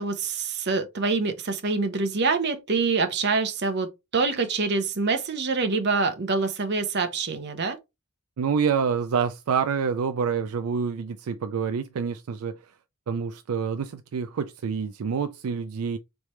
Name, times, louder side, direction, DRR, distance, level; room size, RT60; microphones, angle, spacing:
voice 1, 0.0-7.8, right 4 dB, 50° right, 0.8 m, -25 dB
voice 2, 8.4-12.6 13.1-16.0, right 6 dB, 75° right, 0.4 m, -27 dB
4.2 x 3.3 x 3.2 m
head